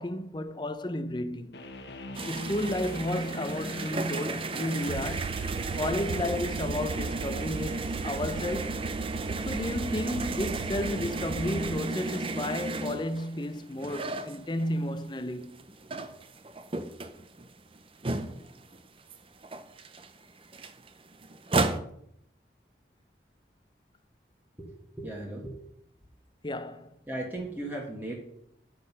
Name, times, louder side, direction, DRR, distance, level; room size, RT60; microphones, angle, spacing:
voice 1, 0.0-1.7 2.3-5.3 5.7-8.8 9.5-15.6 26.4-26.9, left 1 dB, 25° left, 0.6 m, -32 dB
sound 1, 1.5-12.6, left 2 dB, 75° left, 1.2 m, -48 dB
sound 2, 2.1-15.0 15.4-18.8 19.1-19.2 19.4-21.8, right 3 dB, 30° right, 0.6 m, -34 dB
sound 3, 4.9-11.8, right 5 dB, 75° right, 0.3 m, -37 dB
voice 2, 24.6-25.6 27.1-28.1, right 1 dB, 10° right, 1.4 m, -37 dB
9.4 x 6.5 x 5.4 m
head